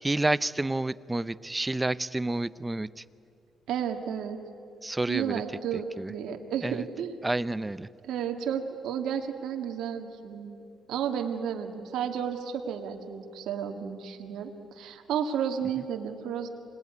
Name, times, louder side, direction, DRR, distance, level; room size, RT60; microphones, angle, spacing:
voice 1, 0.0-3.0 4.8-5.4 5.7-6.1 6.6-6.8 7.2-7.9, right 2 dB, 15° right, 17 dB, 0.6 m, -29 dB
voice 2, 3.7-4.4 5.1-7.1 8.0-10.6 10.9-16.5, right 8 dB, 80° right, 4 dB, 1.8 m, -32 dB
26.0 x 20.0 x 9.5 m, 2.5 s
cardioid pair, 90°, 0 cm